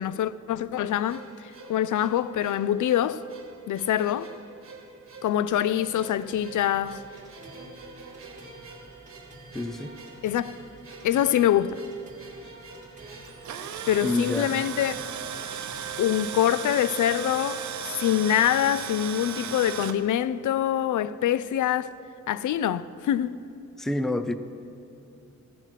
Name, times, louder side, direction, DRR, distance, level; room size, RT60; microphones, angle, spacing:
voice 1, 0.0-3.2 3.7-4.3 5.2-7.0 10.2-10.6 11.0-11.8 13.9-15.0 16.0-17.6 18.0-21.9 22.3-23.4, left 11 dB, 85° left, 0.5 m, -25 dB
sound 1, 1.1-14.3, right 3 dB, 45° right, 1.7 m, -47 dB
sound 2, 4.7-16.4, right 2 dB, 25° right, 2.1 m, -51 dB
voice 2, 9.5-9.9 14.0-14.7 23.8-24.3, left 2 dB, ahead, 0.4 m, -28 dB
Tools, 13.2-19.9, right 8 dB, 70° right, 0.7 m, -35 dB
16.0 x 9.1 x 5.8 m
wide cardioid pair, 170°, 30 cm